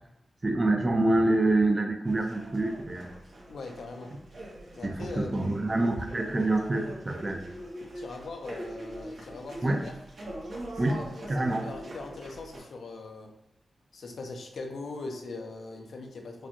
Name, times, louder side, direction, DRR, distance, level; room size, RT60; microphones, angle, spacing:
voice 1, 0.4-3.1 4.8-7.5 9.6-9.8 10.8-11.0 11.3-11.7, right 2 dB, 35° right, 3 dB, 0.5 m, -26 dB
sound 1, 2.0-12.6, right 1 dB, 70° right, 1.2 m, -43 dB
voice 2, 3.5-4.1 4.8-5.6 7.9-9.9 10.9-13.3 13.9-16.5, left 3 dB, 85° left, 3 dB, 0.6 m, -41 dB
4.8 x 2.2 x 2.9 m, 0.84 s
cardioid pair, 75°, 0 cm